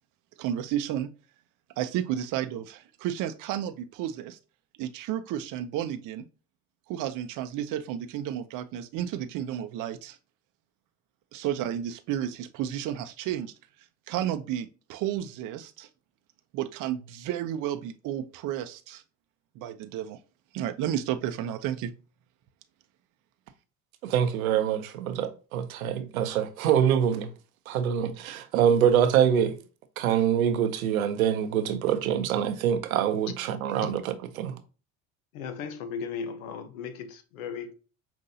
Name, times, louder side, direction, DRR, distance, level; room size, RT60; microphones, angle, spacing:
voice 1, 0.4-1.1 1.8-4.4 4.8-6.2 6.9-10.2 11.3-13.5 14.1-15.9 16.5-19.0 19.6-20.2 20.5-21.9, right 11 dB, 50° right, 0.6 m, -32 dB
voice 2, 24.0-27.3 27.7-29.6 30.0-34.6, right 9 dB, 85° right, 0.7 m, -25 dB
voice 3, 35.3-37.7, left 6 dB, 80° left, 0.8 m, -36 dB
5.5 x 2.6 x 2.6 m
hypercardioid pair, 70°, 40 cm